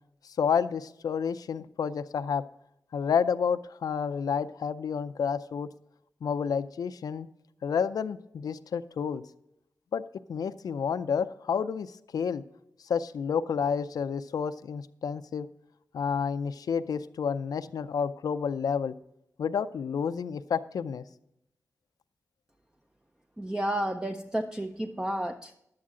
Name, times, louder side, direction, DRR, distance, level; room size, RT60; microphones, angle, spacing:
voice 1, 0.2-2.4 2.9-5.7 6.2-7.3 7.6-9.2 9.9-10.0 10.3-12.4 12.8-15.5 15.9-18.9 19.4-21.0, left 6 dB, 85° left, 12 dB, 0.4 m, -30 dB
voice 2, 23.4-25.5, right 1 dB, 10° right, 6 dB, 0.5 m, -31 dB
11.0 x 8.6 x 3.7 m, 0.82 s
cardioid pair, 75°, 6 cm